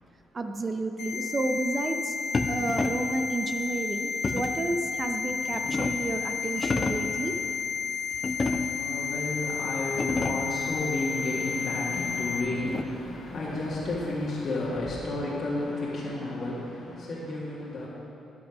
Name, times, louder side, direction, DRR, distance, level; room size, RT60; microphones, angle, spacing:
voice 1, 0.3-2.2 2.5-7.3, right 2 dB, 30° right, 6 dB, 0.7 m, -31 dB
sound 1, 1.0-12.4, left 6 dB, 85° left, 1.9 m, -32 dB
sound 2, 2.3-3.2 4.2-4.7 5.3-6.1 6.5-7.2 8.2-8.9 9.5-9.6 9.9-10.6 12.0-13.1, left 3 dB, 30° left, 0.6 m, -31 dB
voice 2, 8.8-17.9, left 2 dB, 55° left, -7 dB, 1.9 m, -32 dB
11.0 x 6.0 x 6.2 m, 2.7 s
cardioid pair, 90°, 0 cm